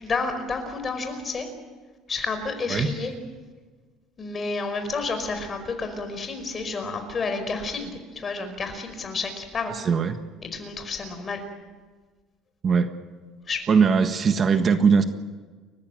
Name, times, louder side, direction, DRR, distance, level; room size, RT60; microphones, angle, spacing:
voice 1, 0.0-1.5 2.1-3.1 4.2-9.8 10.4-11.4 13.5-13.6, left 4 dB, 30° left, 7 dB, 5.0 m, -30 dB
voice 2, 9.8-10.2 12.6-12.9 13.7-15.0, right 5 dB, 35° right, 8 dB, 1.5 m, -20 dB
30.0 x 15.0 x 9.2 m, 1.4 s
cardioid pair, 135°, 0 cm